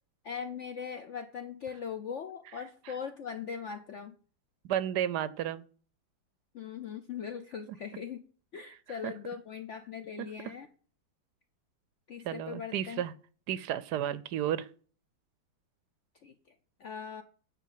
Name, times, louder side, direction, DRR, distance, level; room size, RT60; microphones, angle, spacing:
voice 1, 0.2-4.1 6.5-8.3 8.5-10.7 12.1-13.0 16.2-16.4 16.8-17.2, left 7 dB, 90° left, 9 dB, 0.6 m, -40 dB
voice 2, 4.7-5.6 9.0-9.1 12.2-13.1 13.5-14.7, right 11 dB, 75° right, 17 dB, 1.0 m, -32 dB
9.9 x 4.3 x 7.3 m, 0.43 s
omnidirectional pair, 2.1 m